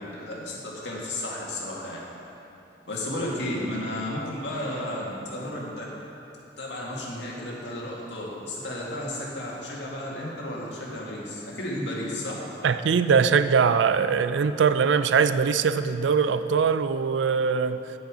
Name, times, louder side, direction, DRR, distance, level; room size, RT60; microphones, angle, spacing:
voice 1, 0.0-2.0 2.9-5.9 6.6-12.4, left 1 dB, 75° left, -4 dB, 1.9 m, -33 dB
voice 2, 12.6-17.8, right 6 dB, 85° right, 12 dB, 0.4 m, -22 dB
9.1 x 8.1 x 5.0 m, 2.9 s
head